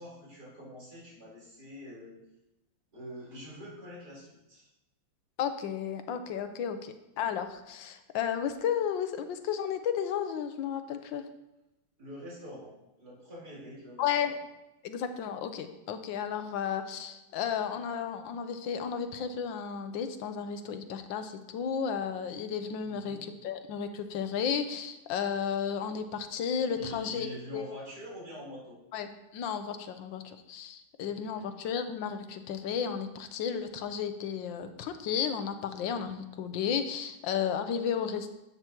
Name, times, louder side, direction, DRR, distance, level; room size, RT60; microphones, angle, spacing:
voice 1, 0.0-2.2 2.9-4.7 12.0-14.4 22.8-23.2 26.7-28.8 31.0-31.5, equal, 55° right, -6 dB, 4.6 m, -45 dB
voice 2, 5.4-11.2 14.0-14.3 14.8-27.3 27.5-27.8 28.9-38.3, left 7 dB, 85° left, 9 dB, 1.5 m, -33 dB
11.5 x 8.3 x 3.0 m, 0.93 s
omnidirectional pair, 2.0 m